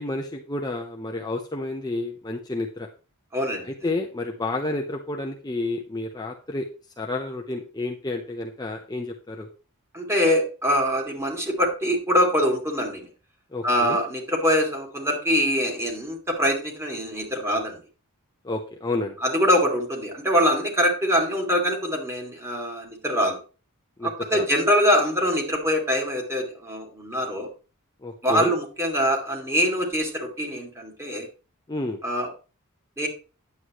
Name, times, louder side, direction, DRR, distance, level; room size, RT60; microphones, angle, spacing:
voice 1, 0.0-2.9 3.6-6.7 7.0-9.5 13.5-14.0 18.4-19.2 24.0-24.5 28.0-28.5 31.7-32.0, left 2 dB, 20° left, 2 dB, 0.7 m, -30 dB
voice 2, 3.3-3.7 9.9-13.1 13.6-17.8 19.2-23.4 24.0-27.5 28.2-31.3 32.0-32.3 33.0-33.1, equal, 10° right, 1 dB, 2.3 m, -24 dB
9.5 x 8.1 x 3.1 m, 0.34 s
head